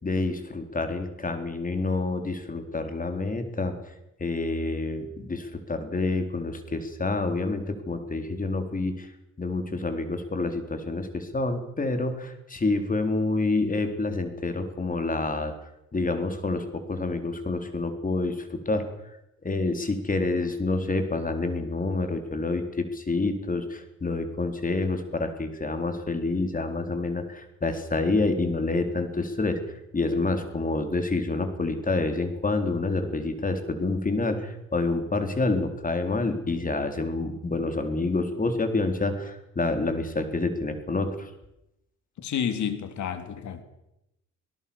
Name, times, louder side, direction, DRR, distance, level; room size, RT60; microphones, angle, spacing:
voice 1, 0.0-3.7 4.2-9.1 9.4-15.5 15.9-18.9 19.4-29.6 29.9-41.3, left 3 dB, 25° left, 7 dB, 4.0 m, -28 dB
voice 2, 42.2-43.6, left 8 dB, 70° left, 9 dB, 3.2 m, -30 dB
26.5 x 18.0 x 7.2 m, 0.86 s
cardioid pair, 90°, 30 cm